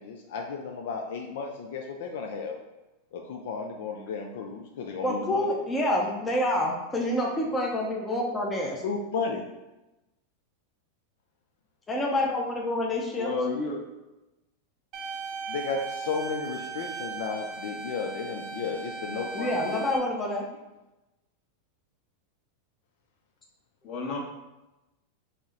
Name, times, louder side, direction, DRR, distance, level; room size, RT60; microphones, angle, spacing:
voice 1, 0.0-2.6 3.1-5.5 8.8-9.4 15.5-19.9, left 5 dB, 70° left, 2 dB, 0.4 m, -34 dB
voice 2, 5.0-8.8 11.9-13.3 19.3-20.4, left 1 dB, 15° left, -1 dB, 0.6 m, -27 dB
voice 3, 13.1-13.8 23.8-24.2, left 3 dB, 45° left, -2 dB, 0.9 m, -30 dB
sound 1, 14.9-20.0, right 4 dB, 40° right, 0.5 m, -37 dB
4.1 x 2.0 x 3.6 m, 1.0 s
supercardioid pair, 125°, 0 cm